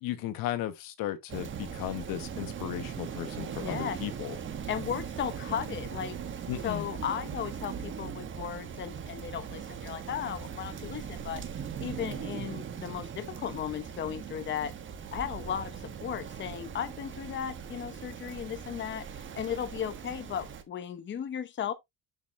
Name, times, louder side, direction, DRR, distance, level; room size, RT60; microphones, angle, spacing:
voice 1, 0.0-4.4 6.5-6.9, left 13 dB, 80° left, 1.2 m, -35 dB
Rain, 1.3-20.6, right 7 dB, 35° right, 1.1 m, -40 dB
voice 2, 3.5-4.0 4.7-6.2 6.6-11.4 11.8-14.7 15.1-21.7, left 9 dB, 35° left, 0.8 m, -36 dB
7.0 x 6.3 x 2.5 m
cardioid pair, 120°, 34 cm